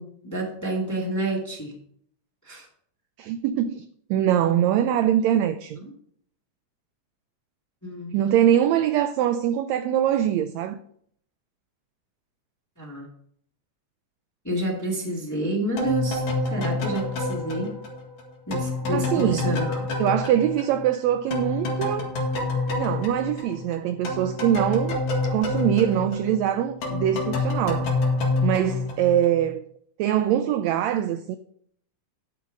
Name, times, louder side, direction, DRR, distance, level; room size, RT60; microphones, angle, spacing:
voice 1, 0.0-1.7 2.4-2.7 7.8-8.1 12.8-13.1 14.4-17.7 18.5-19.9, right 1 dB, 10° left, 1.2 m, -29 dB
voice 2, 3.2-5.8 8.1-10.8 18.9-19.5 20.0-22.1 22.8-25.0 25.3-27.9 28.4-29.6 30.0-31.4, right 10 dB, 85° right, 1.5 m, -23 dB
sound 1, 15.8-21.0 21.3-29.5, left 2 dB, 75° left, 3.3 m, -28 dB
10.5 x 6.9 x 5.0 m
omnidirectional pair, 3.6 m